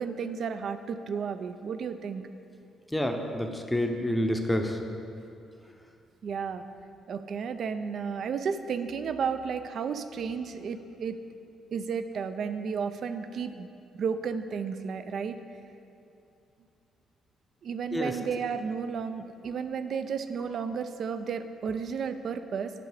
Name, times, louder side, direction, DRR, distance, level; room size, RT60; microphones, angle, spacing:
voice 1, 0.0-2.2 6.2-6.6 7.1-11.2 11.7-13.7 13.9-15.4 17.6-22.7, right 6 dB, 60° right, 10 dB, 0.4 m, -33 dB
voice 2, 2.9-4.8 17.9-18.1, left 1 dB, 5° left, 4 dB, 0.6 m, -28 dB
10.0 x 3.6 x 4.9 m, 2.6 s
cardioid pair, 90°, 0 cm